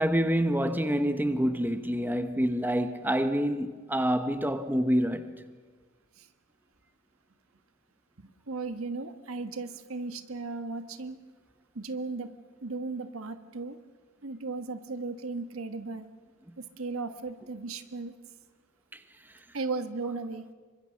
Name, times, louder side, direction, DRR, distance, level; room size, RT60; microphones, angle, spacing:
voice 1, 0.0-5.4, equal, 10° right, 1.1 m, -27 dB
voice 2, 8.5-11.2 11.7-12.3 12.6-13.8 14.2-16.1 16.6-18.1 19.5-20.4, right 3 dB, 75° right, 1.4 m, -36 dB
27.0 x 24.0 x 6.5 m
head